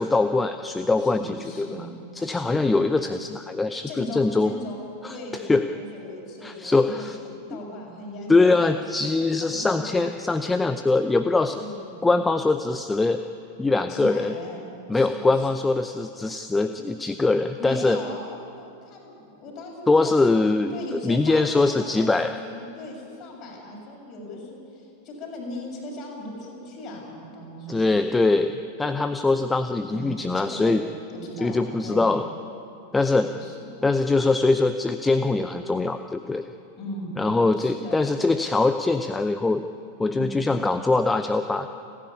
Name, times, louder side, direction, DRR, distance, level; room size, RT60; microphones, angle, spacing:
voice 1, 0.0-1.9 2.2-4.5 5.0-5.2 5.5-5.6 6.4-7.2 7.5-7.6 8.3-11.6 12.0-13.2 13.6-14.3 14.9-18.0 19.9-22.4 27.7-30.8 31.4-32.2 32.9-33.3 33.8-36.4 37.2-39.7 40.0-41.7, left 3 dB, 10° left, 9 dB, 0.7 m, -22 dB
voice 2, 1.0-2.0 2.2-2.8 3.9-4.8 5.1-7.0 7.3-8.8 9.1-10.0 11.6-12.2 13.9-14.6 14.9-15.5 17.6-20.2 20.7-28.0 29.9-30.7 31.2-32.2 32.9-33.7 36.8-37.2 37.6-38.0 40.1-40.4, left 1 dB, 35° left, -1 dB, 6.9 m, -38 dB
30.0 x 11.0 x 9.8 m, 2.7 s
figure-of-eight pair, 90°, 0 cm